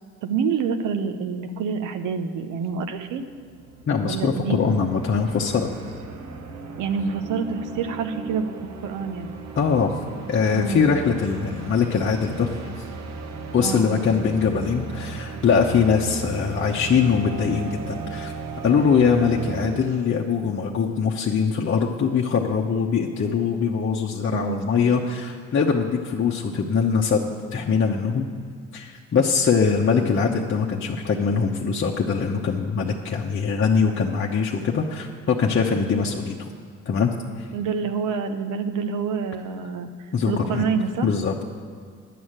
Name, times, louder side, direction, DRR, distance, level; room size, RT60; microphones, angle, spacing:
voice 1, 0.2-3.3 4.0-4.7 6.8-8.5 8.8-9.4 10.5-10.9 13.6-14.2 24.3-24.7 37.5-41.1, right 5 dB, 90° right, 8 dB, 0.8 m, -27 dB
sound 1, 2.9-20.3, right 4 dB, 65° right, 1.0 m, -36 dB
voice 2, 3.9-5.7 9.6-9.9 10.3-12.5 12.8-12.9 13.5-18.3 18.6-28.3 28.7-36.5 36.9-37.5 40.1-40.7 41.0-41.4, left 6 dB, 40° left, -1 dB, 0.8 m, -22 dB
10.0 x 6.3 x 8.7 m, 2.2 s
cardioid pair, 90°, 30 cm